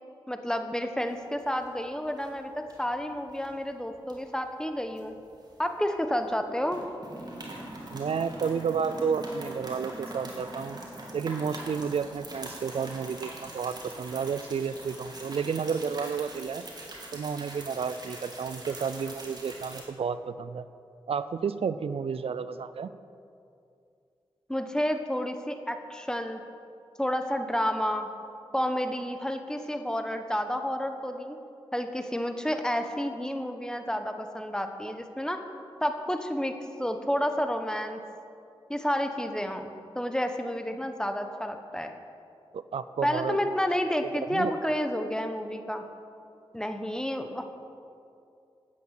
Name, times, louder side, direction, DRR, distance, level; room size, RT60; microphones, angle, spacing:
voice 1, 0.3-5.2 5.6-6.8 24.5-26.4 27.0-28.1 28.5-31.4 31.7-35.4 35.8-38.0 38.7-41.9 43.0-45.8 46.5-47.4, equal, 5° left, 6 dB, 1.3 m, -30 dB
sound 1, 1.1-1.8 2.1-2.3 2.7-3.5 4.1-6.0 6.3-6.4 6.7-19.8, right 1 dB, 45° right, 3.1 m, -43 dB
voice 2, 7.9-10.8 11.1-16.7 17.1-20.6 21.1-22.9 42.5-43.4 44.3-44.5, right 6 dB, 75° right, 14 dB, 0.5 m, -31 dB
12.5 x 9.6 x 8.5 m, 2.5 s
cardioid pair, 60°, 10 cm